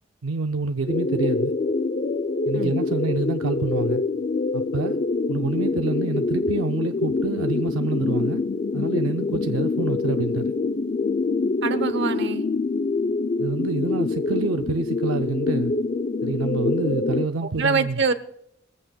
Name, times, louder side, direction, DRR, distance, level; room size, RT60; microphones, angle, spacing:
voice 1, 0.2-1.5 2.5-4.0 4.5-5.0 5.3-8.4 8.7-10.5 13.4-15.7 16.2-18.0, right 3 dB, 80° right, 0.5 m, -27 dB
sound 1, 0.9-17.3, left 3 dB, 40° left, 0.5 m, -25 dB
voice 2, 11.6-12.4 17.4-18.1, right 4 dB, 60° right, 0.9 m, -24 dB
21.0 x 15.0 x 2.3 m
head